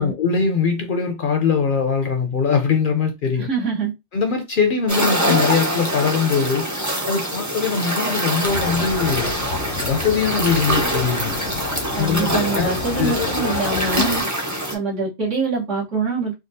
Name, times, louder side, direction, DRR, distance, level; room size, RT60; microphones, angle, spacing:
voice 1, 0.0-3.5 4.1-6.7 7.1-9.3 9.9-11.4 12.0-12.7 13.0-13.6, left 5 dB, 60° left, 0.6 m, -21 dB
voice 2, 3.4-3.9 11.9-14.2 14.7-16.3, right 4 dB, 75° right, 1.5 m, -24 dB
sound 1, 4.9-14.7, equal, 20° right, 0.5 m, -24 dB
sound 2, 8.4-14.2, left 4 dB, 85° left, 1.1 m, -31 dB
3.6 x 2.3 x 2.6 m
omnidirectional pair, 1.3 m